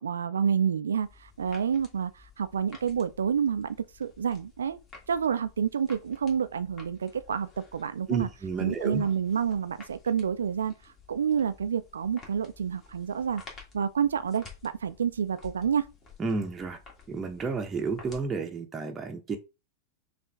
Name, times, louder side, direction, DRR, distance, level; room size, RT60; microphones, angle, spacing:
voice 1, 0.0-4.8 5.1-8.3 8.6-13.4 13.7-15.9, right 7 dB, 70° right, 0.3 m, -29 dB
sound 1, 1.0-18.3, left 4 dB, 25° left, 1.6 m, -53 dB
voice 2, 8.1-9.0 16.2-16.8 17.1-19.4, right 4 dB, 20° right, 0.7 m, -31 dB
5.6 x 2.5 x 3.4 m
figure-of-eight pair, 90°, 0 cm